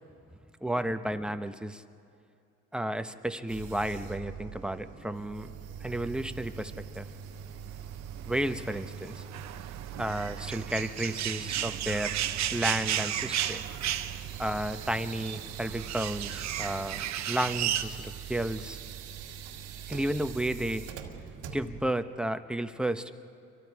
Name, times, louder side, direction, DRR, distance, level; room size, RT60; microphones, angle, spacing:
voice 1, 0.6-1.8 2.7-5.5 5.8-7.1 8.3-9.2 10.0-12.2 12.5-13.6 14.4-18.8 19.9-20.9 21.5-23.1, right 1 dB, 5° right, 8 dB, 1.0 m, -32 dB
sound 1, 3.5-21.9, right 7 dB, 80° right, 1.8 m, -43 dB
sound 2, 6.7-17.8, right 11 dB, 60° right, 1.0 m, -34 dB
29.0 x 24.0 x 4.8 m, 2.4 s
supercardioid pair, 80°, 31 cm